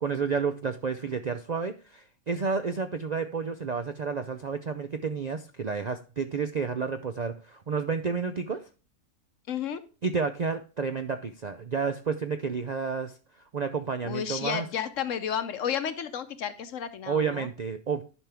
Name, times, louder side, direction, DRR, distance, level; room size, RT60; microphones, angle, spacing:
voice 1, 0.0-8.6 10.0-13.1 13.5-14.7 17.1-18.0, right 5 dB, 55° right, 8 dB, 0.4 m, -30 dB
voice 2, 9.5-9.8 14.0-17.5, left 8 dB, 65° left, 12 dB, 1.1 m, -32 dB
11.0 x 5.8 x 3.4 m, 0.34 s
omnidirectional pair, 1.5 m